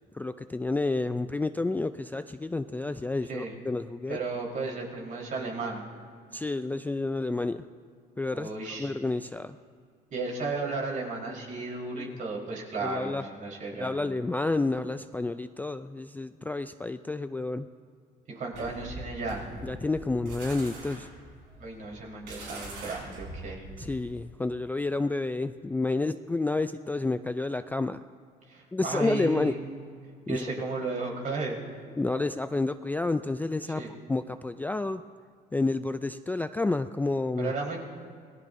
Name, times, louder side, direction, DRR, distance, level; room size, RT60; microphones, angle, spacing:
voice 1, 0.1-4.2 6.3-7.7 8.2-8.5 8.8-9.6 12.0-12.1 12.8-13.2 13.8-17.7 19.6-21.1 23.8-28.0 28.7-29.6 30.3-30.4 32.0-33.8 34.1-35.0 35.5-37.5, left 3 dB, 10° left, 10 dB, 0.3 m, -30 dB
voice 2, 4.1-5.8 8.3-8.9 10.1-13.9 18.3-19.5 21.6-23.6 28.5-29.7 30.3-31.6 33.7-33.9 37.4-37.8, right 3 dB, 50° right, -2 dB, 4.2 m, -34 dB
sound 1, 18.5-24.2, right 2 dB, 85° right, 5.6 m, -42 dB
27.0 x 19.0 x 2.7 m, 2.2 s
cardioid pair, 110°, 17 cm